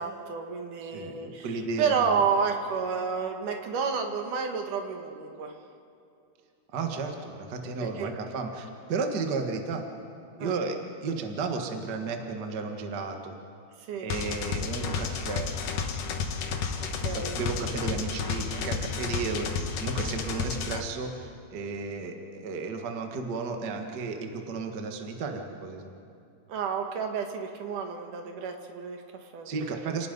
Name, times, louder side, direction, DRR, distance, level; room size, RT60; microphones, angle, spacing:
voice 1, 0.0-5.5 7.8-8.1 10.4-10.6 13.8-14.1 16.8-17.3 26.5-29.7, right 6 dB, 70° right, 4 dB, 2.9 m, -30 dB
voice 2, 0.8-1.9 6.7-9.8 10.4-13.3 14.0-15.5 17.0-25.9 29.4-30.1, right 4 dB, 40° right, 4 dB, 1.6 m, -33 dB
sound 1, 14.1-20.8, left 5 dB, 80° left, 3.0 m, -31 dB
29.5 x 19.0 x 5.4 m, 2.5 s
omnidirectional pair, 3.8 m